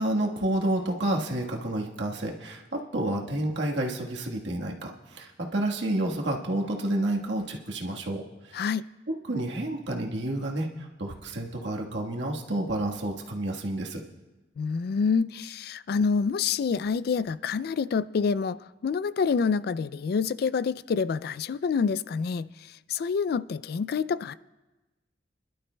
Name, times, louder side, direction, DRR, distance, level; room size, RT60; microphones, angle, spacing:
voice 1, 0.0-8.7 9.3-14.0, right 1 dB, 90° right, 1.5 m, -30 dB
voice 2, 8.5-8.9 14.6-22.5 22.9-24.3, left 5 dB, 60° left, 0.3 m, -27 dB
27.0 x 11.5 x 2.2 m
head